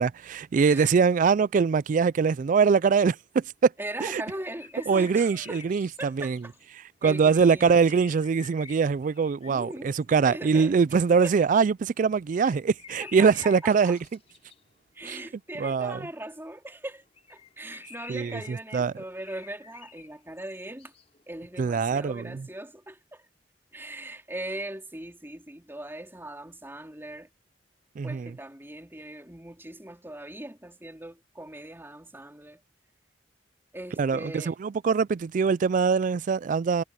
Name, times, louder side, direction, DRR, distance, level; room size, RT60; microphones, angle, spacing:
voice 1, 0.0-3.7 4.0-4.2 4.9-6.4 7.0-14.0 15.0-15.2 15.6-16.0 18.1-18.9 21.6-22.5 28.0-28.3 34.0-36.8, right 5 dB, 45° right, 0.3 m, -23 dB
voice 2, 0.6-1.0 3.8-5.6 6.0-6.6 7.0-7.8 9.5-10.7 11.2-11.4 13.0-14.0 14.9-17.0 17.3-20.9 21.3-23.3 23.7-27.3 28.0-32.6 33.7-34.6, right 1 dB, 15° right, 3.6 m, -40 dB
sound 1, 3.9-6.7 7.3-11.6 11.9-16.7 17.0-21.9, left 6 dB, 35° left, 4.0 m, -50 dB
head